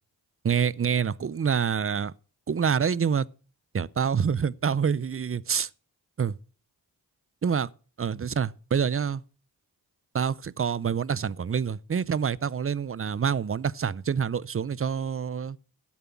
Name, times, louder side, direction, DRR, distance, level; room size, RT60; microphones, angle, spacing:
voice 1, 0.4-2.1 2.5-3.3 3.7-5.7 6.2-6.4 7.4-7.7 8.0-9.2 10.1-15.6, right 7 dB, 35° right, 0.5 m, -26 dB
12.5 x 7.3 x 5.8 m
wide cardioid pair, 80°, 39 cm